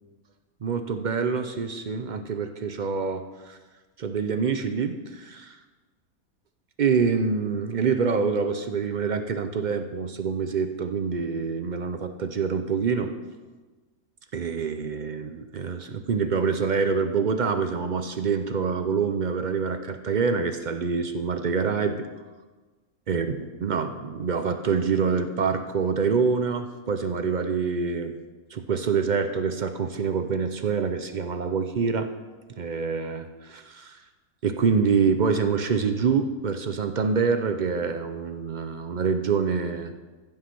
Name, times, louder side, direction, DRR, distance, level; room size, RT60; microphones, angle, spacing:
voice 1, 0.6-3.6 4.0-5.6 6.8-13.1 14.3-22.0 23.1-28.1 28.5-32.1 32.6-34.0 34.4-39.9, right 5 dB, 55° right, 8 dB, 0.5 m, -26 dB
15.0 x 5.6 x 5.9 m, 1.3 s
omnidirectional pair, 1.5 m